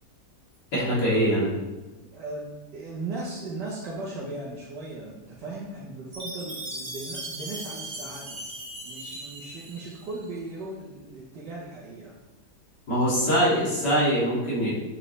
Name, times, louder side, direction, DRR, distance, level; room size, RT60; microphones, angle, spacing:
voice 1, 0.7-1.5 12.9-14.7, equal, 80° left, -8 dB, 3.4 m, -23 dB
voice 2, 2.1-8.4 8.8-12.1, right 2 dB, 75° right, -6 dB, 1.7 m, -37 dB
Chime, 6.1-10.3, right 1 dB, 40° right, 1.7 m, -38 dB
8.4 x 5.4 x 3.3 m, 1.1 s
omnidirectional pair, 1.8 m